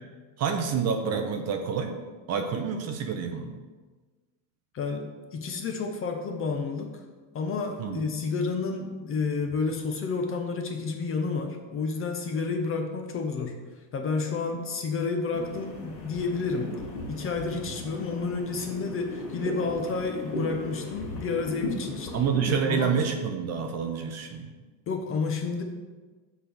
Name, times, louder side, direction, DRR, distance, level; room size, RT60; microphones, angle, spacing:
voice 1, 0.4-2.0 2.3-3.5 7.8-8.0 22.1-24.5, right 6 dB, 35° right, 5 dB, 0.6 m, -28 dB
voice 2, 4.7-7.0 7.3-13.6 13.9-22.2 22.7-22.9 24.9-25.6, left 4 dB, 30° left, 4 dB, 0.6 m, -30 dB
sound 1, 15.3-22.6, left 2 dB, 50° left, 2.0 m, -37 dB
6.5 x 3.5 x 5.9 m, 1.3 s
cardioid pair, 140°, 47 cm